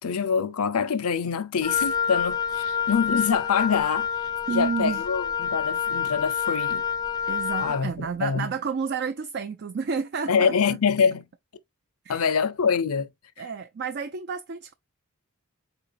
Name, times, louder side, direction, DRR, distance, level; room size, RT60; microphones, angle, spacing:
voice 1, 0.0-4.2 4.5-6.9 7.6-8.5 10.3-11.3 12.1-13.1 13.4-13.5, left 6 dB, 85° left, 0.6 m, -25 dB
Wind instrument woodwind instrument, 1.6-7.9, left 7 dB, 20° left, 0.3 m, -27 dB
voice 2, 4.5-5.0 7.3-10.5 12.0-12.2 13.4-14.7, right 5 dB, 50° right, 0.4 m, -30 dB
5.2 x 4.0 x 2.5 m
head